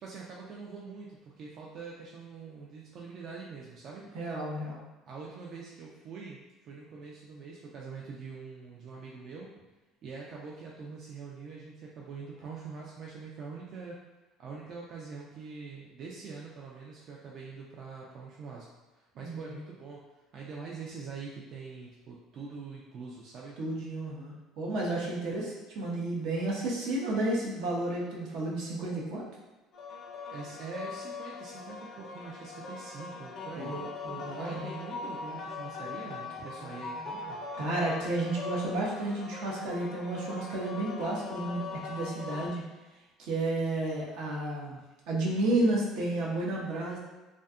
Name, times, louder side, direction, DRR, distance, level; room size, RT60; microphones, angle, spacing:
voice 1, 0.0-4.1 5.1-9.6 10.0-14.0 14.4-20.0 20.3-23.6 30.3-33.8 34.3-37.4, right 4 dB, 50° right, -3 dB, 0.3 m, -44 dB
voice 2, 4.1-4.8 19.2-19.6 23.6-29.2 33.6-34.7 37.6-42.6 43.2-44.8 45.1-47.0, right 2 dB, 75° right, -3 dB, 0.7 m, -32 dB
sound 1, 29.7-42.5, left 4 dB, 45° left, 0.4 m, -41 dB
2.6 x 2.2 x 2.4 m, 1.2 s
cardioid pair, 125°, 0 cm